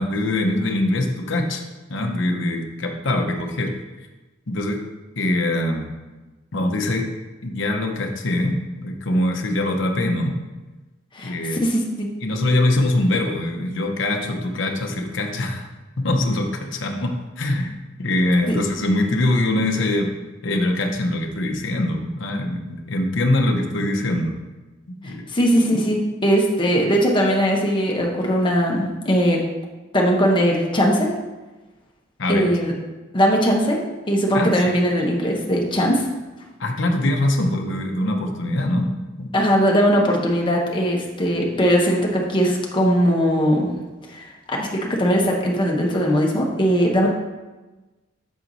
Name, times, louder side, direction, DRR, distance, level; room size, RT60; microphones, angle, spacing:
voice 1, 0.0-1.6 1.9-3.7 4.5-4.8 5.2-5.9 6.5-7.1 7.4-10.4 11.2-11.6 12.2-15.7 16.0-20.1 20.4-24.4 25.0-25.3 32.2-32.5 34.3-34.6 36.6-38.9 39.2-39.3, left 1 dB, 60° left, 3 dB, 0.8 m, -23 dB
voice 2, 11.6-12.1 18.5-18.6 25.0-29.5 29.9-31.1 32.3-32.7 33.1-36.0 39.3-43.7 44.1-44.7 45.0-47.1, equal, 25° left, -1 dB, 1.0 m, -20 dB
7.2 x 4.5 x 4.0 m, 1.2 s
head